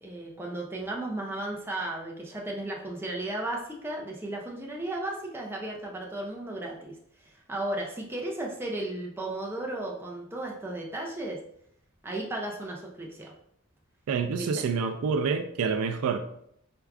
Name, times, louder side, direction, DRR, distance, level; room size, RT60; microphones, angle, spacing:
voice 1, 0.0-11.4 12.0-13.3 14.4-14.7, right 1 dB, 10° right, -2 dB, 0.4 m, -35 dB
voice 2, 14.1-16.2, right 5 dB, 85° right, 7 dB, 0.3 m, -27 dB
4.5 x 2.4 x 2.3 m, 0.70 s
head